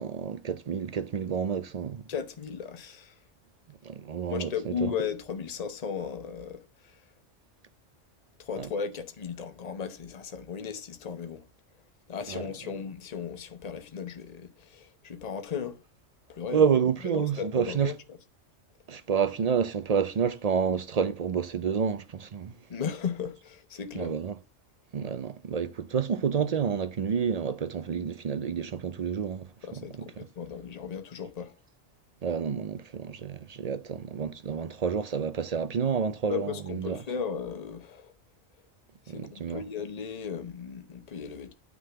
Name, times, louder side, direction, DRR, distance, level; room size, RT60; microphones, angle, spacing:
voice 1, 0.0-2.0 3.7-4.9 8.6-8.7 12.3-12.5 16.5-17.9 18.9-22.6 23.9-24.3 24.9-30.3 32.2-37.0 39.1-39.6, right 7 dB, 50° right, 0.4 m, -29 dB
voice 2, 2.1-3.1 4.3-7.0 8.4-11.4 12.1-15.8 16.3-16.7 17.1-17.9 22.7-24.2 29.6-31.6 36.3-38.1 39.1-41.5, left 7 dB, 35° left, 0.9 m, -36 dB
9.4 x 3.8 x 6.8 m
omnidirectional pair, 1.2 m